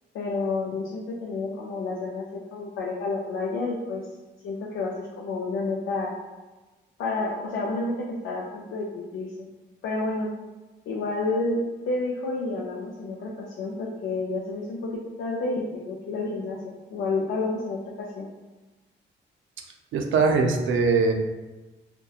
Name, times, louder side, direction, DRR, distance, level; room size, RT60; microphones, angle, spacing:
voice 1, 0.1-4.0 4.4-6.1 7.0-9.5 9.8-10.3 10.9-11.6 11.9-17.8 18.1-18.3, left 3 dB, 75° left, -3 dB, 0.4 m, -30 dB
voice 2, 19.9-21.1, right 4 dB, 80° right, 3 dB, 0.4 m, -21 dB
2.8 x 2.1 x 2.3 m, 1.2 s
wide cardioid pair, 175°, 20 cm